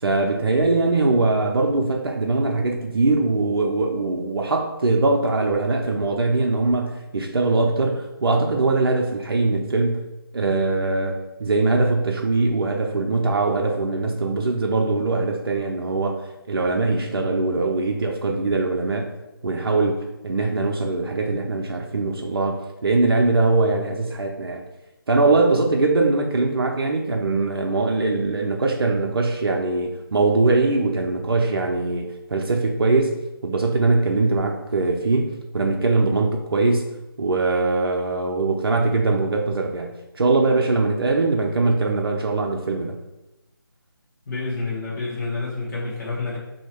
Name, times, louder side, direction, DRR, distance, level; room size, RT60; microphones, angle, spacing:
voice 1, 0.0-10.0 10.3-19.1 19.4-24.6 25.1-33.2 33.4-36.9 37.2-43.0, right 3 dB, 75° right, 1 dB, 0.5 m, -22 dB
voice 2, 44.3-46.4, left 3 dB, 45° left, -8 dB, 1.2 m, -28 dB
2.8 x 2.7 x 4.2 m, 0.97 s
figure-of-eight pair, 160°, 13 cm